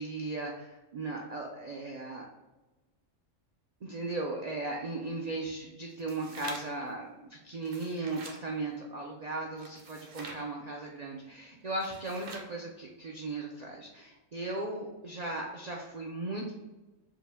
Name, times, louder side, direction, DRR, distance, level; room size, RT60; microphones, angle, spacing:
voice 1, 0.0-2.3 3.8-16.5, right 2 dB, 80° right, 0 dB, 0.3 m, -37 dB
sound 1, 5.9-6.9 7.5-8.4 9.6-10.4 11.7-12.5, right 3 dB, 55° right, 0.7 m, -46 dB
4.8 x 2.2 x 3.4 m, 1.1 s
omnidirectional pair, 1.3 m